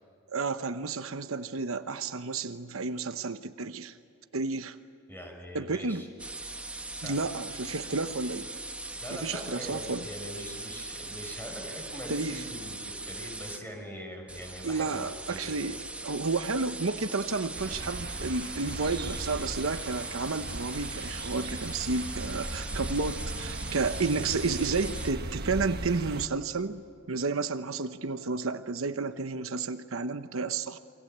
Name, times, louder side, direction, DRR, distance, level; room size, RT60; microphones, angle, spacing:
voice 1, 0.3-4.0 4.3-4.8 5.5-6.0 7.0-8.5 9.1-10.1 12.1-12.4 14.6-15.8 16.0-26.8 27.1-30.8, right 4 dB, 70° right, 9 dB, 1.0 m, -31 dB
voice 2, 5.1-6.1 7.0-7.3 9.0-15.7, equal, 10° left, 2 dB, 6.2 m, -42 dB
sound 1, 6.2-13.6 14.3-25.1, right 2 dB, 5° right, 1.4 m, -40 dB
sound 2, 17.5-26.3, right 2 dB, 50° right, 1.4 m, -38 dB
29.0 x 24.0 x 8.1 m, 2.5 s
head